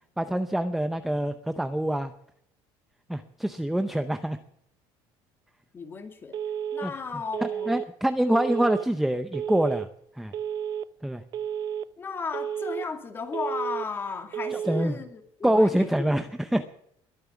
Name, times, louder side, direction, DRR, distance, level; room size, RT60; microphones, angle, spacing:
voice 1, 0.2-2.1 3.1-4.4 6.8-6.9 7.7-9.9 10.2-10.3 11.0-11.2 14.5-15.0 15.4-16.6, right 1 dB, ahead, 9 dB, 0.6 m, -25 dB
voice 2, 5.7-6.4 6.7-7.8 12.0-16.2, left 5 dB, 20° left, 6 dB, 2.3 m, -35 dB
Telephone, 6.3-6.9 7.3-7.9 8.3-8.9 9.3-9.9 10.3-10.9 11.3-11.9 12.3-12.9 13.3-13.9 14.3-14.9, right 9 dB, 40° right, 0.7 m, -31 dB
21.5 x 8.9 x 7.1 m, 0.70 s
cardioid pair, 165°, 11 cm